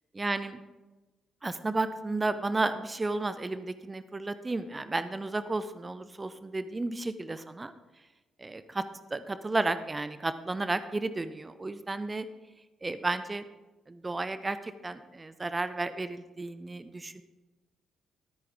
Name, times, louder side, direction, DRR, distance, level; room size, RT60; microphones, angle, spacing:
voice 1, 0.1-0.6 1.4-7.7 8.4-8.8 9.1-12.3 12.8-13.4 13.9-17.2, right 2 dB, 25° right, 12 dB, 0.6 m, -32 dB
13.0 x 9.4 x 3.5 m, 1.1 s
figure-of-eight pair, 40°, 0 cm